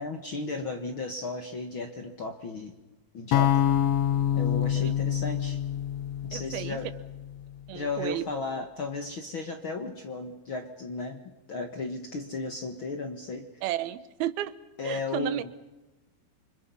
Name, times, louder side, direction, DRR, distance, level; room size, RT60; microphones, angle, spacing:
voice 1, 0.0-2.7 3.1-3.6 4.3-5.6 6.2-6.9 7.7-11.2 11.5-13.5 14.8-15.5, left 3 dB, 55° left, 5 dB, 1.5 m, -34 dB
sound 1, 3.3-7.5, left 10 dB, 90° left, 1.4 m, -26 dB
voice 2, 6.3-6.8 7.7-8.2 13.6-14.5 14.8-15.4, right 13 dB, 85° right, 14 dB, 2.9 m, -33 dB
29.0 x 25.5 x 5.6 m, 1.1 s
omnidirectional pair, 4.3 m